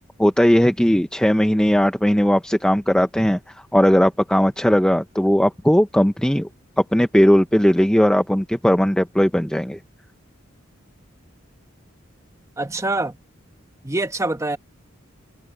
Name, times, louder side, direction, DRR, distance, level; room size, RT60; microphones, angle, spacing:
voice 1, 0.2-3.4 3.7-6.5 6.8-9.8, equal, 5° left, 0.7 m, -18 dB
voice 2, 12.6-13.2 13.8-14.6, right 2 dB, 15° right, 1.0 m, -24 dB
head